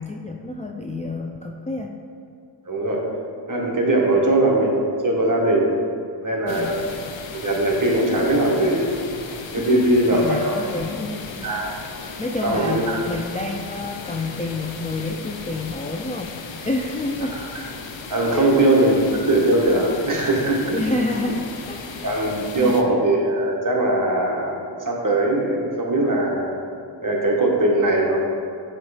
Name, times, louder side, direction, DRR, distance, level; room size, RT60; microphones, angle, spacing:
voice 1, 0.0-2.0 4.1-4.4 6.5-6.9 9.6-11.6 12.2-16.3 16.6-17.4 18.3-18.5 20.7-22.3 22.6-22.8, left 2 dB, 15° left, 0 dB, 0.3 m, -29 dB
voice 2, 2.7-3.1 3.5-5.7 6.2-6.8 7.3-8.9 9.5-10.7 11.4-11.7 12.4-13.0 17.3-17.6 18.1-20.8 22.0-26.5 27.0-28.2, right 1 dB, 40° right, -1 dB, 1.3 m, -20 dB
sound 1, 6.5-22.8, left 4 dB, 65° left, 0.7 m, -36 dB
8.8 x 3.1 x 4.9 m, 2.6 s
wide cardioid pair, 80°, 49 cm